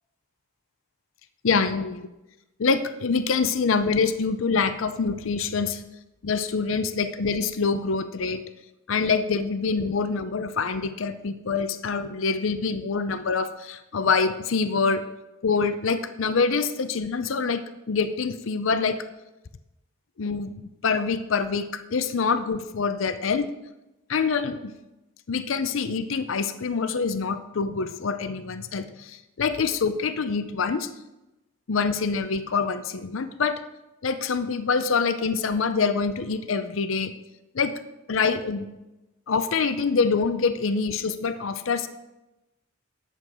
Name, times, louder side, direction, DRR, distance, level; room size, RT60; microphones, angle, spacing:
voice 1, 1.4-2.0 2.6-5.8 6.2-8.4 8.9-15.1 15.4-19.1 20.2-20.5 20.8-23.5 24.1-24.7 25.3-30.9 31.7-33.6 34.0-37.1 37.5-37.8 38.1-38.7 39.3-41.9, left 5 dB, 70° left, 11 dB, 0.6 m, -25 dB
10.0 x 7.8 x 4.9 m, 1.0 s
head